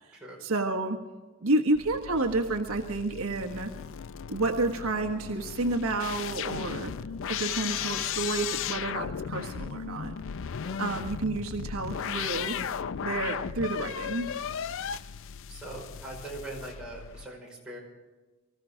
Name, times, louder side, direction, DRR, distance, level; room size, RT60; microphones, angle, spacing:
voice 1, 0.1-1.0 1.4-3.7 4.3-6.9 7.3-10.1 10.8-12.6 13.0-14.3, right 2 dB, 70° right, 3 dB, 1.4 m, -30 dB
sound 1, 1.7-17.3, left 8 dB, 60° left, 0.4 m, -36 dB
voice 2, 15.5-17.8, right 2 dB, 5° right, -4 dB, 5.5 m, -41 dB
24.5 x 15.0 x 3.8 m, 1.3 s
head